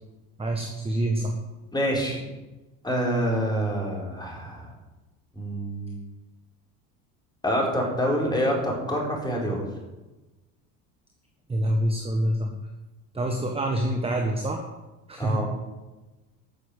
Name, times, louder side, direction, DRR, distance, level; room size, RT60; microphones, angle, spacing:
voice 1, 0.4-1.4 11.5-12.5 13.1-14.6 15.1-15.4, right 1 dB, 15° right, 3 dB, 1.5 m, -26 dB
voice 2, 1.7-2.2 2.8-4.7 5.3-6.0 7.4-9.6 15.2-15.5, equal, 10° left, -2 dB, 4.8 m, -26 dB
12.0 x 6.8 x 8.1 m, 1.1 s
supercardioid pair, 105°, 44 cm